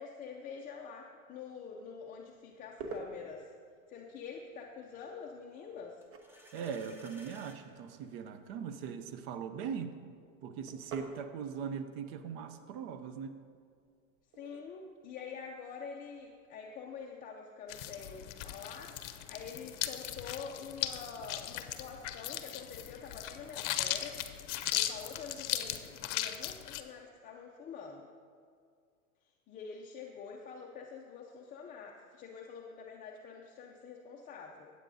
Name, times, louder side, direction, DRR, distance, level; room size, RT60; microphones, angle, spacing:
voice 1, 0.0-3.5 3.9-6.0 14.4-24.2 24.7-28.1 29.5-34.7, left 6 dB, 20° left, 0 dB, 0.5 m, -46 dB
sound 1, 1.9-17.1, right 3 dB, 30° right, 1.0 m, -52 dB
sound 2, 6.0-7.6, left 1 dB, 5° right, 0.9 m, -56 dB
voice 2, 6.5-10.0 10.4-13.3, right 7 dB, 45° right, 9 dB, 0.7 m, -40 dB
sound 3, 17.7-26.8, left 12 dB, 60° left, 0.7 m, -38 dB
15.5 x 8.2 x 2.7 m, 2.2 s
supercardioid pair, 125°, 41 cm